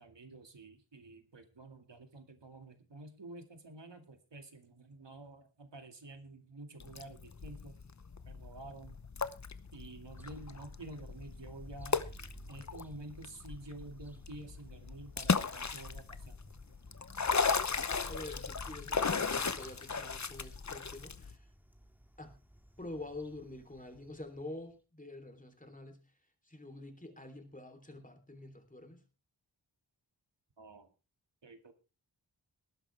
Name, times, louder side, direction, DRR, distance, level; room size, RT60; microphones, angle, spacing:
voice 1, 0.0-7.8 8.3-9.0 9.7-12.1 12.5-16.4 30.6-30.9 31.4-31.7, right 2 dB, 65° right, 6 dB, 2.3 m, -50 dB
sound 1, 6.8-21.3, left 5 dB, 40° left, 0.9 m, -36 dB
sound 2, 10.2-24.7, right 1 dB, 5° right, 2.0 m, -58 dB
voice 2, 18.1-21.5 22.2-22.4 22.8-26.0 26.4-29.0, left 2 dB, 15° left, 6 dB, 3.3 m, -47 dB
19.5 x 11.0 x 3.4 m, 0.32 s
wide cardioid pair, 85°, 46 cm